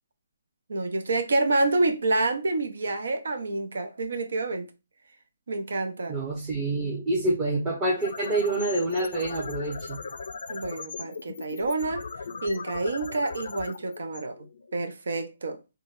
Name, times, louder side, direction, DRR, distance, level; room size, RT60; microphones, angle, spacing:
voice 1, 0.7-4.7 5.5-6.2 10.5-12.0 12.4-15.6, right 2 dB, 70° right, 0.6 m, -28 dB
voice 2, 6.1-10.0, right 2 dB, 20° right, 0.9 m, -27 dB
sound 1, 8.0-14.9, left 5 dB, 65° left, 0.4 m, -39 dB
3.8 x 2.2 x 2.5 m
hypercardioid pair, 145°, 0 cm